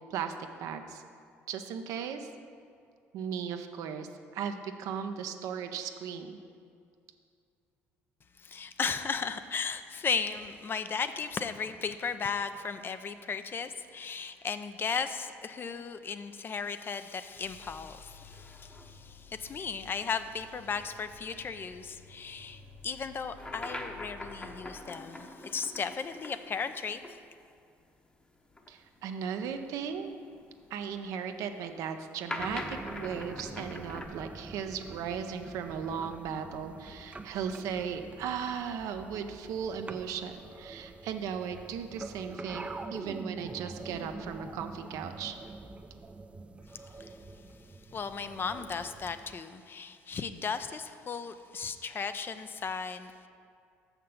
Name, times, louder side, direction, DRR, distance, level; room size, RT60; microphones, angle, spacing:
voice 1, 0.1-1.0 1.5-2.3 3.1-4.1 4.3-6.4 28.7-30.1 30.7-45.4, right 7 dB, 70° right, 7 dB, 0.6 m, -37 dB
voice 2, 8.4-27.2 47.0-47.2 47.9-53.1, left 5 dB, 40° left, 10 dB, 0.5 m, -36 dB
sound 1, 17.4-24.7, left 4 dB, 85° left, 1.5 m, -54 dB
sound 2, 18.2-27.2 27.4-27.5 28.4-34.1, left 1 dB, 15° left, 0.9 m, -45 dB
sound 3, 32.4-49.4, right 3 dB, 20° right, 0.5 m, -46 dB
6.5 x 5.9 x 6.9 m, 2.4 s
supercardioid pair, 75°, 6 cm